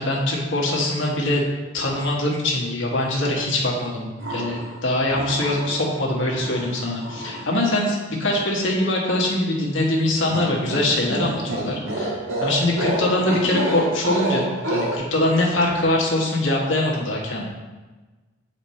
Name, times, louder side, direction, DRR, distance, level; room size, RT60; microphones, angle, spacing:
voice 1, 0.0-1.4 1.7-17.4, left 1 dB, 70° left, -2 dB, 1.4 m, -23 dB
sound 1, 4.2-4.8 5.1-5.9 6.3-7.5 10.3-15.0, right 1 dB, 90° right, 1.3 m, -28 dB
8.0 x 4.4 x 4.3 m, 1.2 s
head